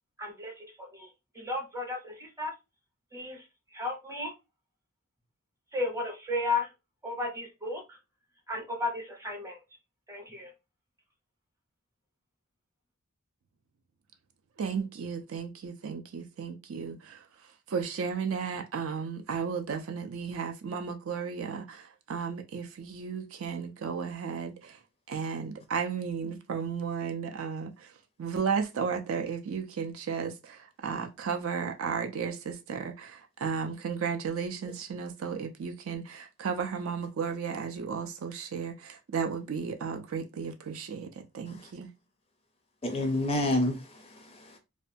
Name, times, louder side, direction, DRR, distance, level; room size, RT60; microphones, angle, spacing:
voice 1, 0.2-1.1 1.3-2.5 3.1-3.4 3.7-4.3 5.7-6.7 7.0-7.8 8.5-9.6 10.1-10.5, left 2 dB, 15° right, 0.7 m, -34 dB
voice 2, 14.6-17.2 17.7-24.8 25.1-27.9 28.2-41.9, right 6 dB, 65° right, 0.4 m, -34 dB
voice 3, 42.8-44.6, left 1 dB, 25° left, 0.4 m, -29 dB
2.5 x 2.2 x 2.5 m
head